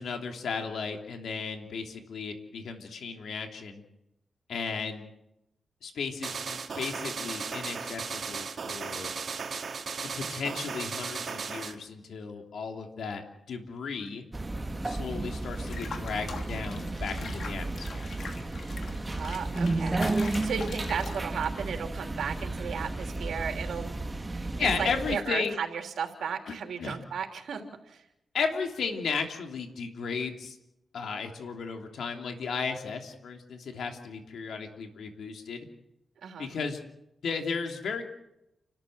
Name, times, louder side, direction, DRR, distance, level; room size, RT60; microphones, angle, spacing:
voice 1, 0.0-3.8 4.5-5.0 5.8-9.1 10.0-13.2 13.5-14.2 14.8-18.1 24.6-25.6 26.5-27.0 28.3-30.6 30.9-35.7 36.4-36.8 37.2-38.0, left 5 dB, 85° left, 4 dB, 3.1 m, -34 dB
sound 1, 6.2-11.8, right 5 dB, 60° right, 2.8 m, -36 dB
sound 2, 14.3-25.2, right 2 dB, 25° right, 1.6 m, -33 dB
Water / Bathtub (filling or washing), 15.7-21.6, left 4 dB, 70° left, 3.2 m, -43 dB
voice 2, 19.1-23.9 24.3-28.0 36.2-36.5, right 7 dB, 90° right, 3 dB, 3.3 m, -35 dB
30.0 x 13.5 x 7.9 m, 0.85 s
cardioid pair, 80°, 0 cm